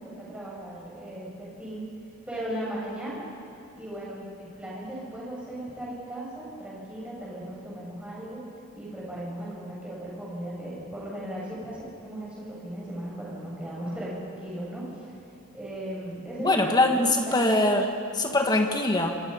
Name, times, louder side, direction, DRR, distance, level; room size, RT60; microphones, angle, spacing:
voice 1, 0.0-1.9 2.3-3.2 3.8-8.4 8.7-15.1 15.5-17.5, right 1 dB, 5° right, -6 dB, 7.1 m, -37 dB
voice 2, 16.4-19.1, left 2 dB, 20° left, 3 dB, 1.9 m, -23 dB
26.5 x 25.5 x 5.5 m, 2.5 s
head